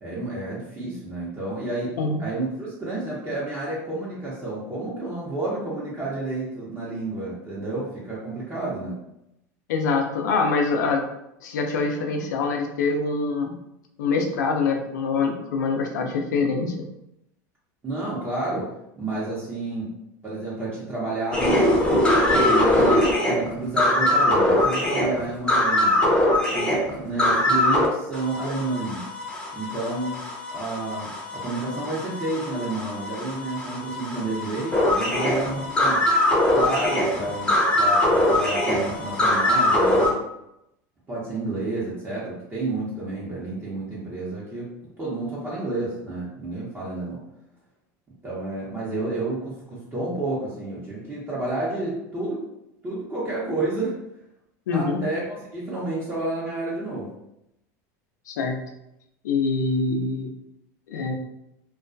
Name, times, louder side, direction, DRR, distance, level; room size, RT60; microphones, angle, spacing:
voice 1, 0.0-9.0 17.8-18.7 19.0-19.9 20.2-21.7 22.2-26.1 26.5-29.1 29.5-30.1 30.5-36.0 36.5-40.1 41.1-44.7 45.0-47.2 48.2-52.4 52.8-54.0 54.7-57.1, right 2 dB, 20° right, -7 dB, 0.8 m, -30 dB
voice 2, 9.7-11.0 11.4-13.5 14.0-16.7 54.7-55.0 58.3-58.6 59.2-60.3 60.9-61.1, left 4 dB, 85° left, 3 dB, 0.5 m, -24 dB
sound 1, 21.3-27.9 28.1-40.1, left 1 dB, 10° left, 0.7 m, -22 dB
2.3 x 2.2 x 2.5 m, 0.84 s
supercardioid pair, 105°, 9 cm